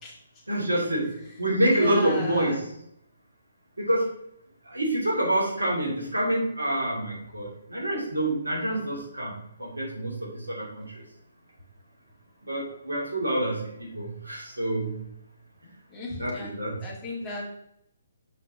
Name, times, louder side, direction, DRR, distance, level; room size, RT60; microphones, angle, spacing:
voice 1, 0.5-2.7 3.8-4.1 4.7-9.3 9.6-11.0 12.4-14.9 16.2-16.8, right 1 dB, 80° right, -3 dB, 2.9 m, -27 dB
voice 2, 1.7-2.6 15.9-17.4, left 1 dB, 15° left, -5 dB, 2.5 m, -36 dB
6.7 x 5.6 x 3.8 m, 0.76 s
figure-of-eight pair, 135°, 0 cm